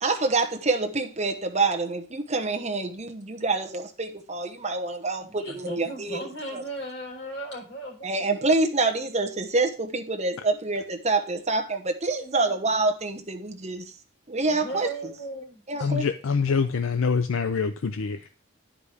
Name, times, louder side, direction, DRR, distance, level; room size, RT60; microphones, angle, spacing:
voice 1, 0.0-6.2 6.5-6.6 8.0-13.9 14.3-14.9 15.7-16.0, right 3 dB, 30° right, 0.9 m, -26 dB
voice 2, 5.2-8.5 12.0-12.6 14.4-15.9, right 2 dB, 55° left, 4.6 m, -37 dB
voice 3, 15.8-18.3, left 5 dB, 70° left, 0.5 m, -25 dB
9.8 x 5.0 x 4.9 m
head